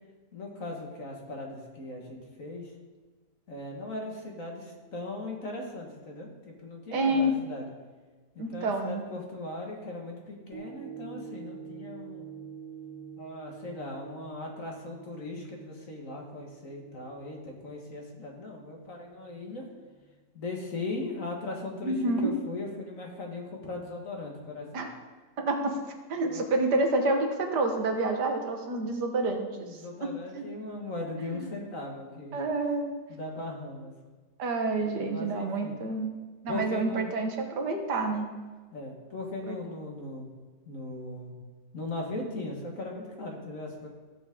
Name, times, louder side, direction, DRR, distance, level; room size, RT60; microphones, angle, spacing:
voice 1, 0.3-2.7 3.5-7.7 8.4-12.3 13.2-19.7 20.3-24.9 26.3-26.6 29.6-32.4 33.1-33.9 35.1-35.8 36.5-37.1 38.7-40.3 40.7-41.3 41.7-43.9, left 2 dB, 50° left, 0 dB, 1.9 m, -38 dB
voice 2, 6.9-7.3 8.4-9.1 21.8-22.3 24.7-24.9 25.4-25.8 26.1-30.4 31.3-31.4 32.3-32.9 34.4-36.1 36.4-38.3 39.5-39.6, right 2 dB, 70° right, 4 dB, 1.6 m, -28 dB
sound 1, 10.5-18.9 19.4-19.5, right 8 dB, 30° right, 0.7 m, -47 dB
14.5 x 7.1 x 3.7 m, 1.3 s
omnidirectional pair, 1.9 m